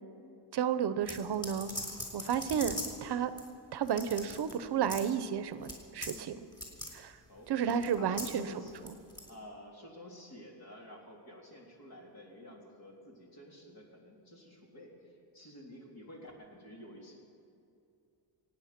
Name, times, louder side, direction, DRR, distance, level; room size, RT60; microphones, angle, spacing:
voice 1, 0.5-1.7 2.1-3.3 3.7-6.5 6.9-7.1 7.5-8.5, right 8 dB, 65° right, 12 dB, 0.8 m, -32 dB
sound 1, 1.1-3.0 3.4-3.5 3.8-4.5 4.9-5.1 5.6-5.8 6.0-6.2 6.5-6.9 7.7-8.3 8.7-9.3, left 1 dB, 10° left, 3.5 m, -40 dB
voice 2, 7.3-8.7 9.3-15.1 15.3-17.2, equal, 55° left, -1 dB, 3.5 m, -50 dB
25.0 x 9.4 x 5.9 m, 2.6 s
wide cardioid pair, 140°, 44 cm